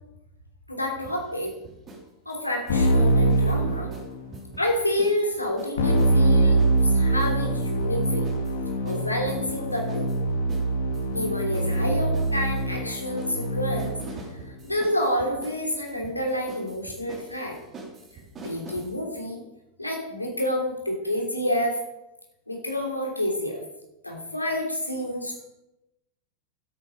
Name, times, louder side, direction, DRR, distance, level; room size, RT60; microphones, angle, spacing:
voice 1, 0.7-1.5 2.2-3.9 4.6-8.3 8.8-10.1 11.1-14.0 14.6-17.6 18.4-19.4 19.8-21.8 22.5-23.6 24.0-25.3, left 1 dB, 85° left, 1 dB, 2.9 m, -28 dB
sound 1, 1.0-2.0 2.3-5.2 5.6-18.9, right 3 dB, 25° right, 3.4 m, -44 dB
Keyboard (musical), 2.7-4.4 5.8-14.2, right 1 dB, 60° left, 1.9 m, -23 dB
13.0 x 8.7 x 5.1 m, 0.94 s
figure-of-eight pair, 90°, 0 cm